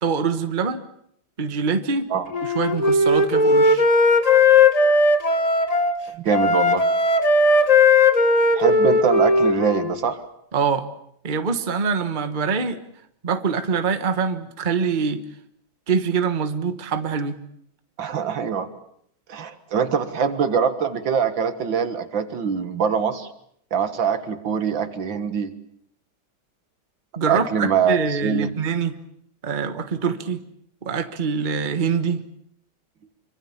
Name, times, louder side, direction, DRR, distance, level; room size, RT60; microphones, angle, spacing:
voice 1, 0.0-0.8 1.4-2.1 2.4-3.8 10.5-10.9 11.2-12.8 13.2-15.2 15.9-17.4 27.2-29.0 29.4-30.4 30.8-32.2, right 5 dB, 25° right, 8 dB, 1.4 m, -24 dB
Wind instrument woodwind instrument, 2.3-6.0 6.3-9.9, left 3 dB, 20° left, 1.2 m, -17 dB
voice 2, 6.2-6.9 8.5-10.2 18.0-18.7 19.3-23.3 23.7-25.5 27.3-28.5, right 7 dB, 70° right, 10 dB, 2.3 m, -23 dB
26.0 x 25.0 x 7.2 m, 0.69 s
omnidirectional pair, 2.2 m